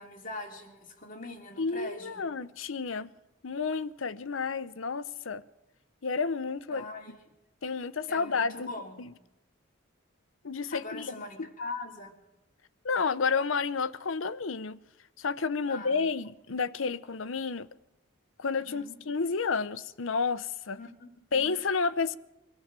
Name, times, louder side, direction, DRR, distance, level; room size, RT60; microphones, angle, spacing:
voice 1, 0.0-2.3 6.7-7.2 8.1-9.0 10.7-12.2 15.7-16.1 18.6-19.0 20.8-21.5, left 3 dB, 45° left, 3.0 m, -42 dB
voice 2, 1.6-3.1 3.4-5.4 6.0-6.8 7.6-8.7 9.0-9.1 10.4-11.1 12.8-14.8 15.2-17.7 18.4-20.8 21.3-22.2, left 5 dB, 90° left, 0.7 m, -30 dB
24.5 x 14.5 x 7.5 m
head